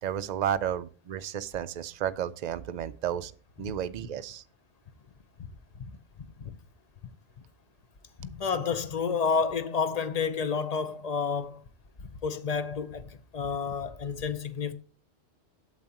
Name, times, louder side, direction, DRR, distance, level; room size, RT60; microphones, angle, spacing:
voice 1, 0.0-3.3 3.6-4.4, right 9 dB, 60° right, 0.4 m, -32 dB
voice 2, 8.2-11.6 12.0-14.7, left 5 dB, 40° left, 0.6 m, -30 dB
8.9 x 7.6 x 2.9 m
omnidirectional pair, 1.2 m